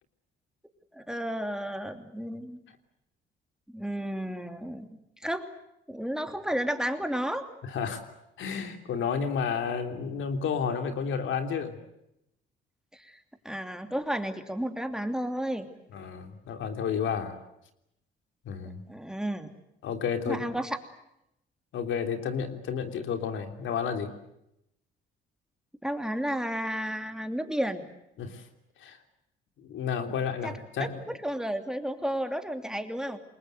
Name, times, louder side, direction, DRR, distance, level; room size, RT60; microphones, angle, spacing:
voice 1, 0.9-2.6 3.7-5.4 5.9-7.5 12.9-13.2 13.4-15.7 18.9-19.5 20.3-20.8 25.8-27.8 30.4-30.5 30.8-33.2, equal, 5° right, 6 dB, 2.8 m, -32 dB
voice 2, 7.6-8.0 8.4-11.7 15.9-17.4 18.4-18.8 19.8-20.4 21.7-24.1 28.2-28.4 28.8-29.0 29.6-31.0, left 6 dB, 75° left, 6 dB, 3.3 m, -31 dB
28.5 x 21.5 x 8.0 m, 0.82 s
cardioid pair, 90°, 20 cm